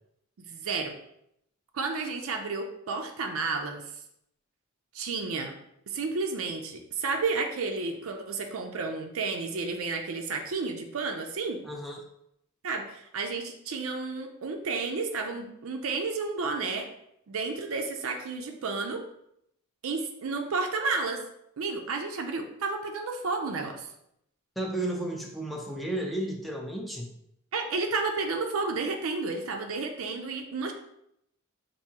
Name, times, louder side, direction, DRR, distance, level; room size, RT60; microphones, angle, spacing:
voice 1, 0.5-0.9 1.7-3.9 4.9-5.5 5.9-11.6 12.6-16.9 17.3-19.0 19.8-21.2 21.6-23.9 27.5-30.7, right 4 dB, 70° right, 4 dB, 0.5 m, -31 dB
voice 2, 11.6-12.0 24.6-27.1, right 1 dB, ahead, 0 dB, 0.5 m, -33 dB
5.9 x 2.6 x 2.8 m, 0.77 s
head